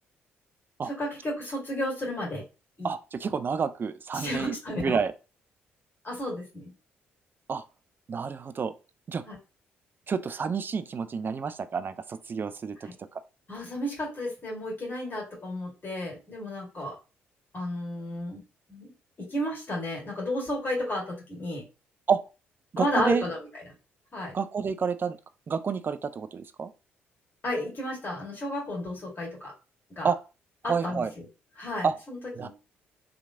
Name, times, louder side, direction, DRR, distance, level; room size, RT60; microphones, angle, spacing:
voice 1, 0.9-2.4 2.8-2.9 4.1-5.0 6.0-6.7 9.3-9.4 13.5-16.9 17.5-18.4 18.7-18.9 19.3-21.6 22.8-23.4 24.1-24.3 27.4-29.5 30.0-30.1 30.6-31.0 31.6-32.5, left 1 dB, 35° left, 1.6 m, -32 dB
voice 2, 2.8-5.1 7.5-7.6 8.1-8.7 9.1-9.2 10.1-12.9 22.1-22.2 22.7-23.3 24.3-25.2 25.5-26.7 30.0-30.2 30.7-31.1 31.8-31.9 32.3-32.5, right 6 dB, 35° right, 0.4 m, -29 dB
2.9 x 2.5 x 2.6 m
figure-of-eight pair, 45°, 6 cm